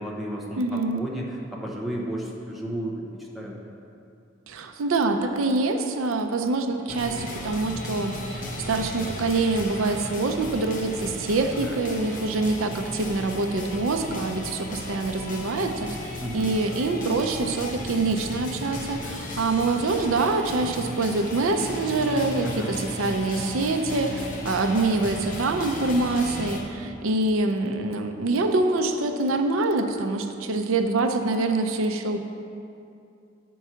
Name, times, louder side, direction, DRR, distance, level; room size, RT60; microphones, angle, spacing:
voice 1, 0.0-3.6 11.6-11.8 16.2-16.5 22.4-22.7, equal, ahead, -4 dB, 0.8 m, -33 dB
voice 2, 0.6-1.0 4.5-32.2, right 3 dB, 80° right, 5 dB, 0.5 m, -25 dB
sound 1, 6.9-26.6, left 1 dB, 40° left, 0.9 m, -35 dB
8.2 x 4.6 x 5.7 m, 2.6 s
head